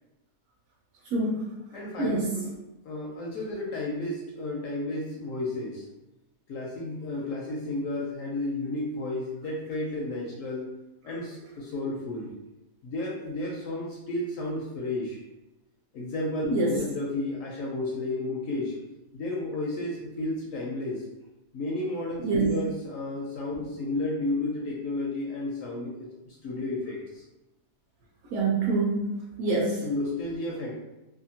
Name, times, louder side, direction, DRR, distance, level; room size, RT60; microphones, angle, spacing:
voice 1, 1.1-1.5 2.0-2.4 16.5-16.7 22.2-22.5 28.3-29.8, right 3 dB, 70° right, -2 dB, 0.8 m, -26 dB
voice 2, 1.7-2.5 2.8-5.8 6.5-10.7 11.0-12.3 12.8-15.2 15.9-18.8 19.1-21.0 21.5-27.2 29.8-30.8, left 2 dB, 70° left, -3 dB, 0.8 m, -32 dB
2.8 x 2.4 x 2.7 m, 0.97 s
omnidirectional pair, 1.7 m